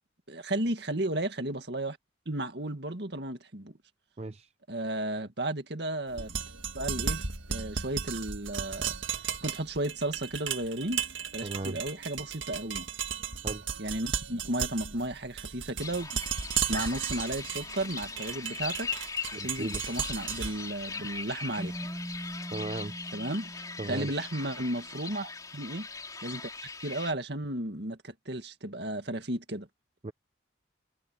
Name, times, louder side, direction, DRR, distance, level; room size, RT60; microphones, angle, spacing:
voice 1, 0.3-2.0 2.3-3.8 4.7-6.4 6.7-7.2 7.5-8.9 9.4-11.0 11.3-12.9 13.8-16.1 16.7-18.9 19.3-21.7 23.1-25.9 26.2-26.5 26.8-29.7, right 1 dB, 60° right, 2.1 m, -34 dB
voice 2, 4.2-4.5 11.4-11.8 13.4-13.6 19.3-19.8 22.5-22.9 23.8-24.1 30.0-30.1, right 2 dB, 35° right, 0.6 m, -36 dB
sound 1, 6.1-22.2, right 7 dB, 90° right, 1.8 m, -35 dB
sound 2, 15.8-27.1, left 4 dB, 20° left, 3.3 m, -40 dB
Keyboard (musical), 21.6-24.8, equal, 15° right, 0.9 m, -41 dB
head